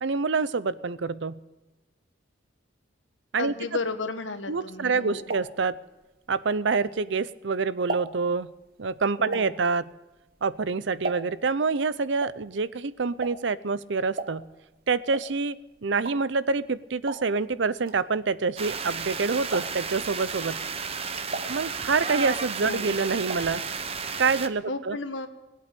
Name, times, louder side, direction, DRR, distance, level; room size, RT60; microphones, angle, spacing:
voice 1, 0.0-1.4 3.3-3.5 4.5-5.8 6.3-8.5 8.8-9.9 10.4-14.4 14.9-20.6 21.5-23.6 24.2-25.0, right 4 dB, 70° right, 16 dB, 0.6 m, -26 dB
voice 2, 3.4-5.3 9.2-9.4 22.6-23.0 24.7-25.3, left 3 dB, 70° left, 9 dB, 1.3 m, -33 dB
sound 1, 4.7-7.3 7.6-11.6 11.8-19.1 19.4-20.0 20.5-22.2 22.5-23.6 23.9-24.0 24.2-24.3, right 2 dB, 45° right, 1.2 m, -38 dB
sound 2, 18.6-24.5, right 5 dB, 30° right, 0.8 m, -33 dB
18.0 x 8.6 x 8.3 m, 1.1 s
head